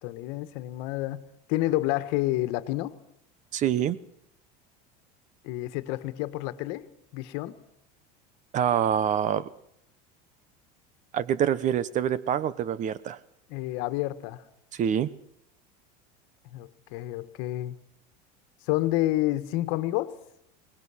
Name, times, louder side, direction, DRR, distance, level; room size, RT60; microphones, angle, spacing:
voice 1, 0.0-2.9 5.4-6.9 7.1-7.6 13.5-14.4 16.5-17.7 18.6-20.1, left 16 dB, 65° left, 11 dB, 1.6 m, -29 dB
voice 2, 3.5-4.0 8.5-9.5 11.1-13.2 14.7-15.1, right 9 dB, 35° right, 18 dB, 1.1 m, -26 dB
21.5 x 19.0 x 6.4 m, 0.74 s
supercardioid pair, 130°, 20 cm